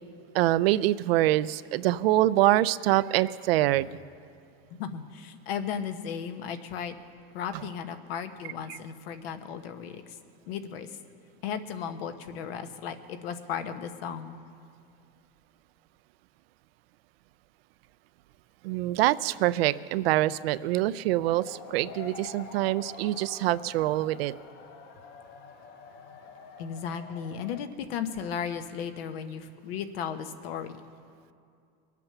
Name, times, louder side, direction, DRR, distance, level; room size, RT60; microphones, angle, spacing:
voice 1, 0.3-3.9 8.7-8.8 18.6-24.3, right 15 dB, 80° right, 16 dB, 0.5 m, -25 dB
voice 2, 4.8-6.9 7.3-10.2 10.5-11.0 11.4-14.4 26.6-30.8, left 7 dB, 75° left, 9 dB, 1.2 m, -35 dB
sound 1, 21.1-27.6, left 5 dB, 35° left, 1.0 m, -47 dB
22.5 x 8.4 x 6.7 m, 2.4 s
supercardioid pair, 150°, 30 cm